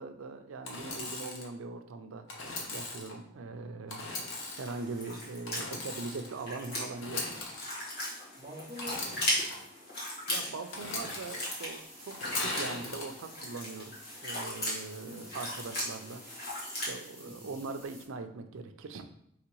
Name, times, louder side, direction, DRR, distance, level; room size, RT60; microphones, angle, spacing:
voice 1, 0.0-2.2 2.7-4.0 4.6-7.2 10.3-13.9 14.2-16.2 16.7-19.0, right 3 dB, 85° right, 7 dB, 0.5 m, -41 dB
Engine / Sawing, 0.6-1.5 2.3-3.1 3.9-4.7 5.5-6.3 6.9-7.7 8.8-9.5 10.7-11.5 12.1-13.1, left 2 dB, 75° left, 0.8 m, -38 dB
sound 1, 4.3-16.9, left 1 dB, 55° left, 1.5 m, -38 dB
voice 2, 8.4-9.6 15.0-15.4 17.2-17.6, left 1 dB, 20° right, -6 dB, 0.7 m, -47 dB
sound 2, 10.7-18.0, equal, 15° left, 1.3 m, -53 dB
4.9 x 3.0 x 3.0 m, 0.73 s
head